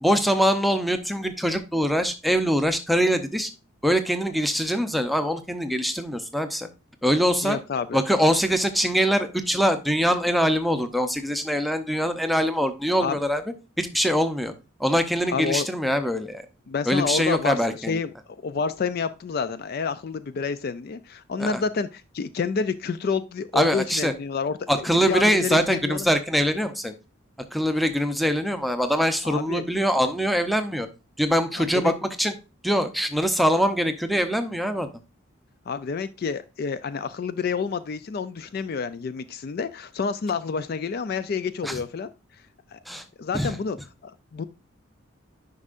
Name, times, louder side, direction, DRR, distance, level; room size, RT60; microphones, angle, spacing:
voice 1, 0.0-3.5 3.8-6.7 7.0-7.6 7.9-13.4 13.8-14.5 14.8-16.4 16.9-18.0 21.4-21.6 23.5-24.1 24.7-26.9 27.5-30.9 31.2-32.3 32.6-34.9 41.6-41.8 42.9-43.0 43.3-43.5, equal, ahead, 8 dB, 0.6 m, -23 dB
voice 2, 7.4-8.0 13.0-13.2 15.3-15.7 16.7-17.6 17.9-18.1 18.4-26.1 29.2-29.7 31.6-31.9 35.7-42.1 42.7-42.8 43.2-43.8 44.0-44.4, left 5 dB, 45° left, 13 dB, 0.3 m, -29 dB
9.6 x 5.4 x 2.5 m, 0.30 s
head